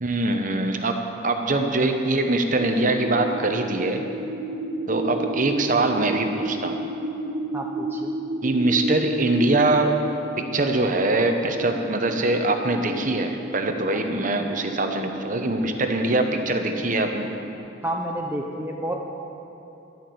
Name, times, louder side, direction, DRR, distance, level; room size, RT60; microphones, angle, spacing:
voice 1, 0.0-4.0 4.9-6.9 8.4-10.0 10.4-17.3, right 2 dB, 40° right, 5 dB, 0.9 m, -23 dB
sound 1, 2.6-17.6, right 2 dB, 65° right, 1.0 m, -33 dB
voice 2, 7.5-8.1 17.8-19.1, right 1 dB, 10° right, 0 dB, 0.7 m, -30 dB
11.0 x 11.0 x 7.9 m, 3.0 s
head